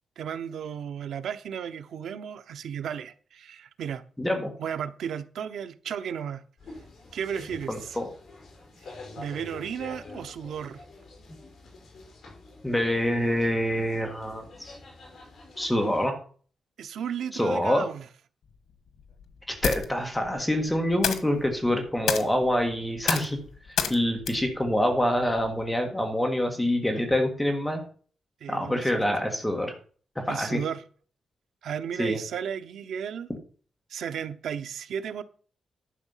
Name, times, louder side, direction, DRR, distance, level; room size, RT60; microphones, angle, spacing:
voice 1, 0.2-4.0 4.6-6.4 7.1-8.0 8.8-10.8 16.8-18.1 28.4-29.0 30.3-30.8 31.6-33.3 33.9-35.2, right 8 dB, 80° right, 0.8 m, -34 dB
voice 2, 4.2-4.5 7.7-8.1 12.6-14.8 15.6-16.2 17.3-17.9 19.5-23.4 23.7-27.8 28.5-29.7 30.1-30.6 32.0-32.2, left 1 dB, 5° left, 1.6 m, -26 dB
sound 1, 6.6-16.1, left 2 dB, 50° left, 5.2 m, -47 dB
sound 2, 18.5-25.7, left 7 dB, 90° left, 1.4 m, -33 dB
11.5 x 6.5 x 5.6 m
wide cardioid pair, 170°, 0 cm